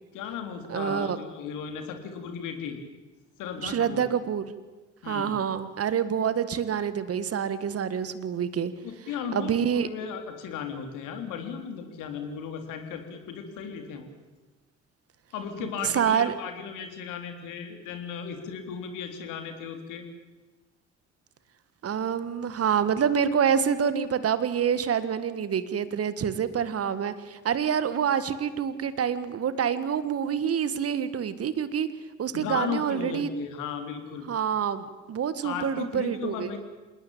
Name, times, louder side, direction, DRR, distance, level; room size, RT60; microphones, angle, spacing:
voice 1, 0.1-2.8 3.4-4.0 5.0-5.4 8.8-14.1 15.3-20.0 32.3-34.3 35.4-36.6, left 7 dB, 60° left, 5 dB, 3.7 m, -36 dB
voice 2, 0.7-1.2 3.6-4.5 5.1-8.7 9.3-9.9 15.6-16.3 21.8-31.9 32.2-33.3 34.3-36.6, right 8 dB, 45° right, 13 dB, 1.8 m, -27 dB
27.5 x 19.0 x 8.8 m, 1.2 s
figure-of-eight pair, 50°, 34 cm